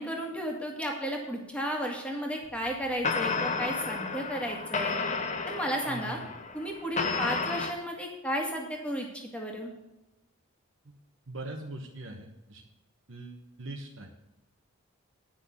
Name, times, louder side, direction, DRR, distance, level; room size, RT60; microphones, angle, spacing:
voice 1, 0.0-5.0 5.5-6.2 6.5-9.7, equal, 5° left, 1 dB, 1.9 m, -33 dB
sound 1, 2.5-2.7 3.0-7.7, left 4 dB, 30° left, 0.8 m, -32 dB
voice 2, 5.9-6.2 11.3-12.6 13.1-14.1, right 2 dB, 60° right, 1 dB, 1.2 m, -41 dB
10.0 x 6.2 x 7.0 m, 0.99 s
head